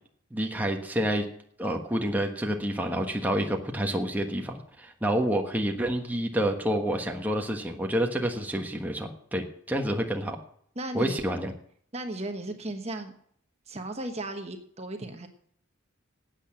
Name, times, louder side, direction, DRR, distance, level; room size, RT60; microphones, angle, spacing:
voice 1, 0.3-1.2 1.6-10.4 10.9-11.5, right 1 dB, 10° right, 2 dB, 1.3 m, -28 dB
voice 2, 10.7-11.2 11.9-13.1 13.7-15.3, right 1 dB, 35° right, 5 dB, 1.2 m, -35 dB
12.0 x 8.7 x 7.5 m, 0.64 s
head